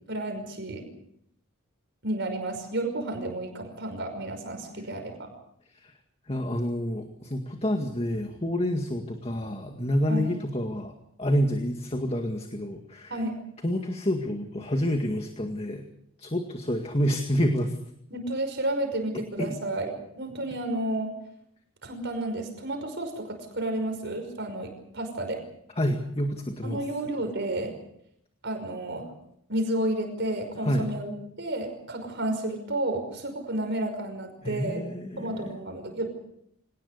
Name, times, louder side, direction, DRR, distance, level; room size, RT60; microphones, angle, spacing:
voice 1, 0.1-0.9 2.0-5.3 10.1-10.3 13.1-13.4 18.1-21.1 21.8-25.4 26.6-27.7 28.4-29.1 29.5-31.1 31.4-34.8 35.2-36.2, right 1 dB, 50° right, 5 dB, 5.6 m, -31 dB
voice 2, 6.3-13.1 13.6-15.8 16.2-17.8 19.4-19.5 25.8-26.8 30.6-30.9 34.4-35.5, equal, 25° left, 4 dB, 2.0 m, -28 dB
26.0 x 19.0 x 6.8 m, 0.71 s
head